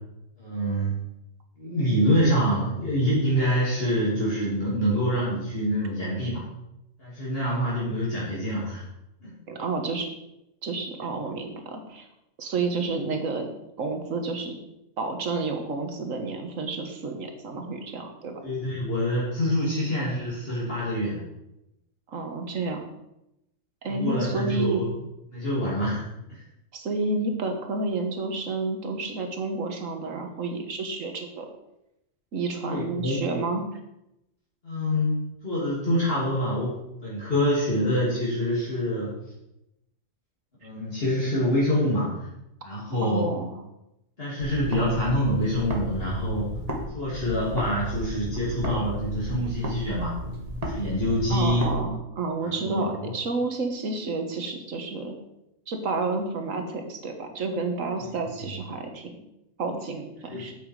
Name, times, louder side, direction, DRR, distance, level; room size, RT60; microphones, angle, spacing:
voice 1, 0.4-0.9 1.6-6.4 7.0-8.8 9.2-9.3 18.4-21.2 23.9-24.9 25.3-26.0 26.3-26.4 32.6-33.2 34.6-39.1 40.6-42.1 42.6-43.3 44.2-46.5 46.9-50.1 50.6-51.7 52.4-53.1 60.3-60.5, equal, 50° left, -8 dB, 3.3 m, -26 dB
voice 2, 9.5-10.1 10.6-12.1 12.4-13.5 13.8-14.6 15.0-18.4 22.1-22.9 23.8-24.8 26.7-31.5 32.3-33.6 43.0-43.5 51.3-55.2 55.7-59.1 59.6-60.5, right 3 dB, 85° right, 5 dB, 1.7 m, -30 dB
sound 1, 44.4-46.9 47.1-51.8, equal, 30° right, 1.5 m, -34 dB
9.0 x 7.9 x 4.8 m, 0.87 s
omnidirectional pair, 1.3 m